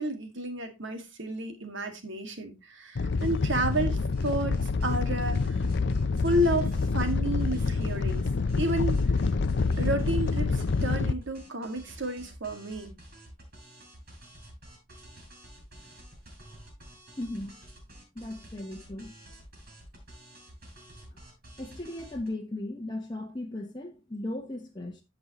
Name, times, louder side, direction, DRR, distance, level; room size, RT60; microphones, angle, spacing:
voice 1, 0.0-5.6 6.2-8.3 8.6-9.2 9.8-13.0, right 1 dB, 65° right, 2.0 m, -31 dB
Animal, 2.9-11.1, left 4 dB, 60° left, 0.6 m, -27 dB
sound 1, 3.2-8.2 8.5-22.3, right 1 dB, 50° right, 5.8 m, -50 dB
voice 2, 17.2-17.6 18.1-19.1 21.6-25.0, left 1 dB, 25° left, 1.1 m, -37 dB
15.0 x 5.4 x 3.0 m
head